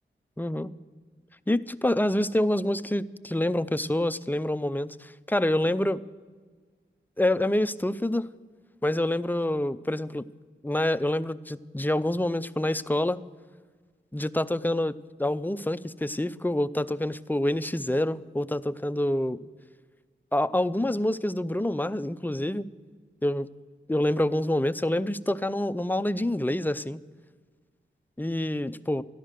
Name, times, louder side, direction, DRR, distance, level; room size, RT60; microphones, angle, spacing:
voice 1, 0.4-0.7 1.5-6.0 7.2-8.3 8.8-10.3 10.6-13.2 14.1-19.4 20.3-22.7 23.2-23.5 23.9-27.0 28.2-29.0, left 1 dB, 10° left, 13 dB, 0.4 m, -27 dB
13.5 x 11.0 x 6.5 m, 1.5 s
cardioid pair, 55°, 20 cm